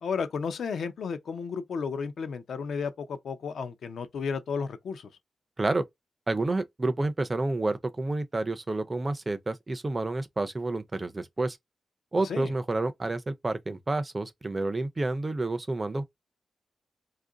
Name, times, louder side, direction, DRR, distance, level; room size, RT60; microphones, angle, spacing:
voice 1, 0.0-5.1 12.2-12.5, left 5 dB, 80° left, 0.5 m, -33 dB
voice 2, 6.3-11.6 12.1-16.0, right 2 dB, 20° right, 0.4 m, -29 dB
2.8 x 2.5 x 3.7 m
wide cardioid pair, 170°, 0 cm